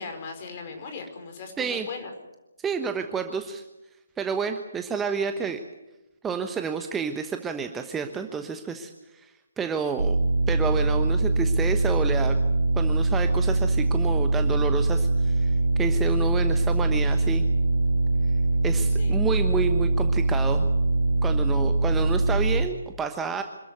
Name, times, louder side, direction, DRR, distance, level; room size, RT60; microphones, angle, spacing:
voice 1, 0.0-2.1 19.0-19.2, left 4 dB, 35° left, 5 dB, 5.1 m, -38 dB
voice 2, 2.6-3.6 4.2-5.6 6.2-10.2 10.5-12.4 12.7-17.5 18.6-20.7 21.2-23.4, right 5 dB, 10° right, 6 dB, 1.1 m, -30 dB
sound 1, 10.0-22.7, right 2 dB, 70° right, 1.7 m, -23 dB
26.5 x 14.0 x 9.5 m, 1.0 s
figure-of-eight pair, 140°, 0 cm